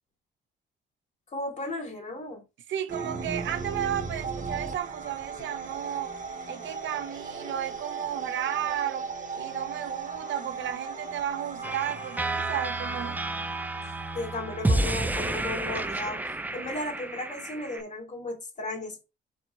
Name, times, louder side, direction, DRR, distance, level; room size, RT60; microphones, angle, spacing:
voice 1, 1.3-2.4 14.1-16.2 16.5-19.0, left 2 dB, 35° left, 2.1 m, -35 dB
voice 2, 2.7-6.1 6.5-9.1 9.3-13.2, right 10 dB, 70° right, 0.7 m, -33 dB
sound 1, 2.9-16.3, right 5 dB, 40° right, 0.8 m, -38 dB
sound 2, 5.4-12.9, left 4 dB, 60° left, 1.0 m, -50 dB
sound 3, 11.6-17.8, right 2 dB, 10° right, 0.4 m, -30 dB
4.2 x 2.1 x 4.4 m
cardioid pair, 90°, 20 cm